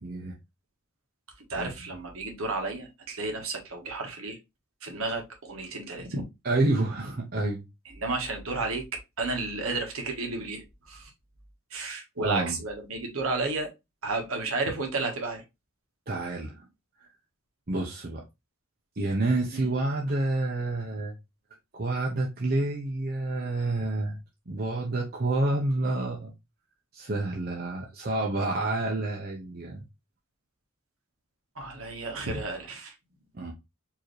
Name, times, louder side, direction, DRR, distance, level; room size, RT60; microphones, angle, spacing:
voice 1, 0.0-0.4 1.6-1.7 6.4-7.6 12.2-12.6 16.1-16.6 17.7-18.2 19.0-21.1 21.7-24.2 24.5-26.3 26.9-29.8 33.3-33.5, right 2 dB, 40° right, 0.8 m, -28 dB
voice 2, 1.5-4.4 4.8-6.3 7.8-11.1 11.7-13.7 14.0-15.4 19.5-19.7 31.5-32.9, right 3 dB, 70° right, 1.3 m, -32 dB
4.7 x 2.9 x 3.1 m
head